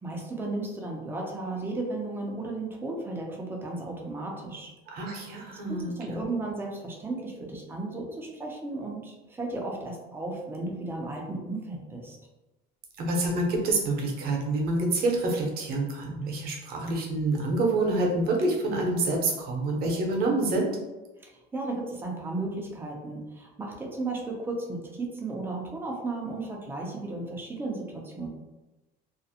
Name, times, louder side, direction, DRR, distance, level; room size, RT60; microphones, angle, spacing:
voice 1, 0.0-4.7 5.7-12.2 21.2-28.3, right 2 dB, 10° right, -1 dB, 0.4 m, -34 dB
voice 2, 4.9-6.2 13.0-20.7, right 2 dB, 50° right, 0 dB, 0.7 m, -27 dB
2.5 x 2.0 x 2.6 m, 1.1 s
cardioid pair, 140°, 20 cm